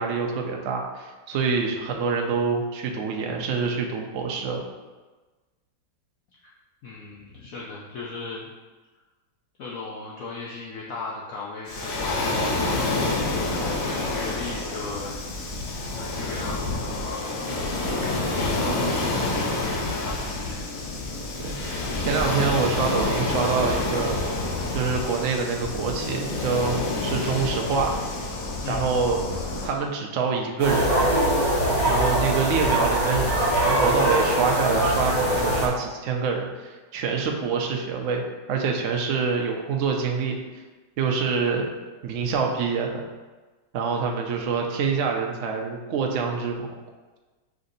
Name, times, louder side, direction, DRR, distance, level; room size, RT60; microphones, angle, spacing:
voice 1, 0.0-4.6 21.4-24.2 24.7-28.0 28.7-29.2 29.6-30.9 31.8-40.4 41.0-41.7 42.0-42.9 43.7-46.7, right 5 dB, 65° right, 1 dB, 0.7 m, -26 dB
voice 2, 6.8-8.5 9.6-13.1 13.6-15.1 16.0-17.3 18.2-19.1 19.4-20.6 28.6-29.0, left 3 dB, 70° left, -4 dB, 0.8 m, -36 dB
Waves surf, 11.7-29.7, left 2 dB, 85° left, 1.5 m, -28 dB
sound 1, 30.6-35.7, right 1 dB, 45° left, 1.3 m, -22 dB
5.1 x 2.7 x 3.9 m, 1.3 s
omnidirectional pair, 1.9 m